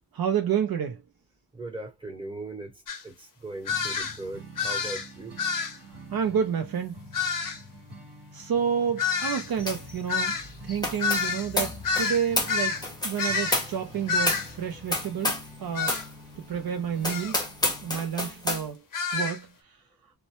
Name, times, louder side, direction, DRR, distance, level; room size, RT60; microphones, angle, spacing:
voice 1, 0.1-1.0 6.1-7.1 8.3-10.4 10.6-12.8 13.0-16.0 16.5-17.4 17.8-18.8 19.1-19.5, right 8 dB, 60° right, 0.5 m, -29 dB
voice 2, 1.5-2.7 3.0-5.4, right 2 dB, 15° right, 0.9 m, -39 dB
sound 1, 2.9-3.0 3.7-4.2 4.6-5.1 5.4-5.8 7.1-7.6 9.0-12.8 13.2-13.6 14.1-14.5 15.8-16.0 17.1-17.3 18.9-19.4, left 5 dB, 50° left, 0.6 m, -28 dB
sound 2, 3.7-18.0, equal, 80° right, 1.1 m, -47 dB
sound 3, 9.7-9.9 10.2-15.5 15.8-16.1 16.5-16.6 17.0-18.6, left 2 dB, 10° left, 0.6 m, -30 dB
2.1 x 2.0 x 2.8 m
wide cardioid pair, 125°, 40 cm